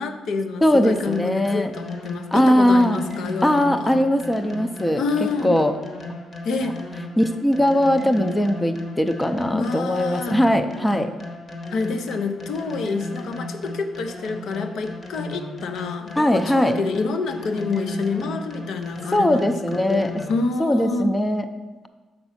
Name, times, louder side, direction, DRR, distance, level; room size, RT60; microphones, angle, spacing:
voice 1, 0.0-4.0 5.0-5.5 6.4-6.8 9.5-10.4 11.7-19.5 19.9-21.1, left 4 dB, 70° left, 8 dB, 0.7 m, -27 dB
voice 2, 0.6-1.7 2.3-3.0 3.4-5.0 5.4-5.8 7.2-11.1 16.2-16.8 19.1-20.1 20.6-21.5, equal, 10° left, 8 dB, 0.5 m, -20 dB
sound 1, 1.0-20.6, left 1 dB, 35° left, 1.3 m, -36 dB
5.9 x 5.2 x 5.7 m, 1.2 s
cardioid pair, 90°, 0 cm